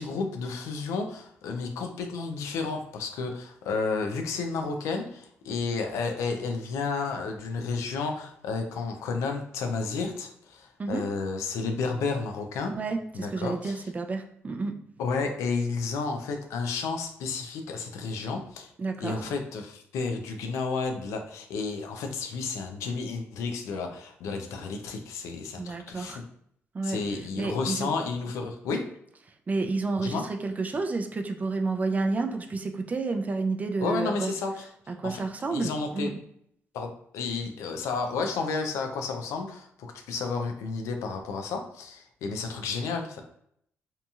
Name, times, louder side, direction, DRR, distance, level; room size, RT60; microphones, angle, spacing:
voice 1, 0.0-12.7 13.1-13.8 15.0-18.7 19.0-26.2 26.8-28.8 30.0-30.2 33.8-35.2 35.5-36.1 36.7-43.2, left 4 dB, 90° left, 5 dB, 0.4 m, -32 dB
voice 2, 12.7-14.8 18.8-19.2 25.6-26.2 26.7-27.0 27.4-27.9 29.5-34.3 34.9-36.1, right 3 dB, 30° right, 5 dB, 0.4 m, -30 dB
2.7 x 2.7 x 2.3 m, 0.70 s
cardioid pair, 80°, 5 cm